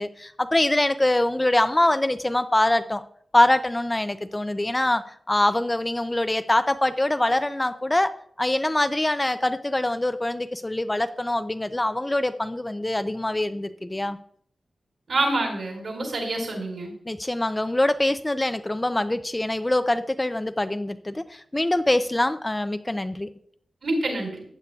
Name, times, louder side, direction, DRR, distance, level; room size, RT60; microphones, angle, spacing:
voice 1, 0.0-3.0 3.3-8.1 8.4-14.2 17.1-23.3, left 1 dB, 15° left, 11 dB, 0.3 m, -24 dB
voice 2, 15.1-16.9 23.8-24.4, right 2 dB, 70° right, 1 dB, 4.7 m, -27 dB
15.0 x 9.2 x 2.3 m, 0.63 s
wide cardioid pair, 155°, 0 cm